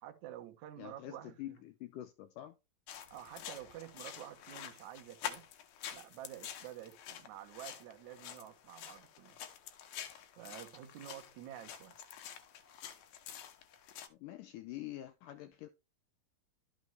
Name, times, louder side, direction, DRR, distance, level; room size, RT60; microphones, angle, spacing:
voice 1, 0.0-1.6 3.1-5.5 5.9-9.4 10.4-12.0, right 12 dB, 60° right, 2.2 m, -50 dB
voice 2, 0.8-2.6 14.1-15.7, left 14 dB, 85° left, 1.8 m, -46 dB
sound 1, 2.9-14.1, left 10 dB, 70° left, 2.4 m, -48 dB
12.0 x 6.4 x 3.4 m
omnidirectional pair, 4.5 m